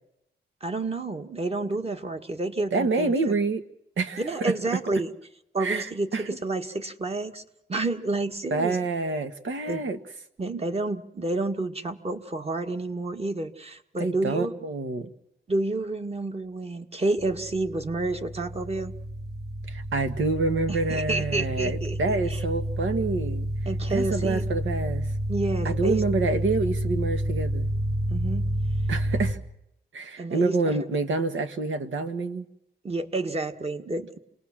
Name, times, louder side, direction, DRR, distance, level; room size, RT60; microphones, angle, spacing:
voice 1, 0.6-3.3 4.2-5.1 5.5-7.4 7.7-8.8 9.7-9.8 10.4-14.5 15.5-18.9 20.7-22.4 23.6-24.4 25.3-26.0 28.1-28.4 30.2-30.5 32.8-34.2, right 2 dB, 30° right, 1.6 m, -29 dB
voice 2, 2.7-3.6 4.0-4.8 5.6-6.3 8.5-10.0 14.0-15.1 19.7-23.5 23.9-25.1 25.6-27.7 28.9-29.4 29.9-32.4, right 3 dB, 90° right, 1.6 m, -27 dB
sound 1, 17.2-29.3, right 1 dB, 55° right, 6.3 m, -29 dB
28.0 x 19.0 x 7.5 m
wide cardioid pair, 125°, 19 cm